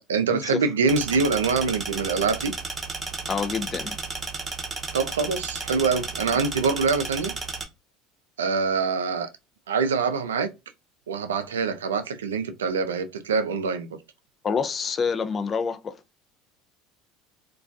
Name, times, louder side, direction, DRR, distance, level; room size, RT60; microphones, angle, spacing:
voice 1, 0.0-2.5 4.9-7.3 8.4-9.3 9.7-10.5 11.1-13.9, right 5 dB, 85° right, 0.3 m, -24 dB
sound 1, 0.9-7.6, right 3 dB, 25° right, 0.7 m, -33 dB
voice 2, 3.3-3.9 14.4-16.0, left 5 dB, 35° left, 0.4 m, -27 dB
2.2 x 2.2 x 2.4 m
hypercardioid pair, 75°, 0 cm